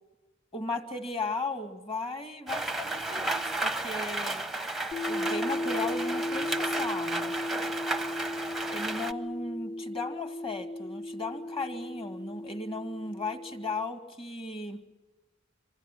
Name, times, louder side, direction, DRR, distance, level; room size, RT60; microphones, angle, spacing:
voice 1, 0.5-4.4 5.1-7.3 8.7-14.8, left 3 dB, 30° left, 7 dB, 2.2 m, -36 dB
Rain, 2.5-9.1, right 2 dB, ahead, 0.7 m, -33 dB
sound 1, 4.9-13.7, left 1 dB, 50° left, 2.1 m, -36 dB
26.5 x 25.5 x 6.2 m, 1.2 s
head